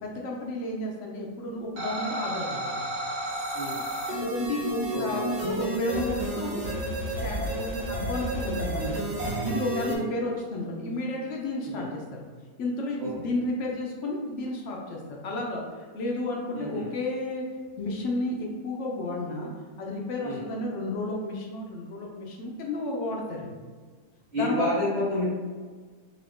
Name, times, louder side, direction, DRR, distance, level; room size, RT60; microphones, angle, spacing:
voice 1, 0.0-2.8 4.1-6.7 7.2-12.2 12.6-15.6 15.9-17.4 17.8-19.5 19.8-23.5 24.3-24.8, left 2 dB, 70° left, -1 dB, 0.7 m, -32 dB
sound 1, 1.8-9.9, right 1 dB, 70° right, 0.4 m, -31 dB
voice 2, 4.9-5.2 9.9-10.0 11.7-11.8 13.0-13.1 16.5-16.9 20.2-20.4 24.3-25.2, left 1 dB, 45° right, -10 dB, 1.0 m, -29 dB
2.8 x 2.5 x 3.4 m, 1.5 s
omnidirectional pair, 1.7 m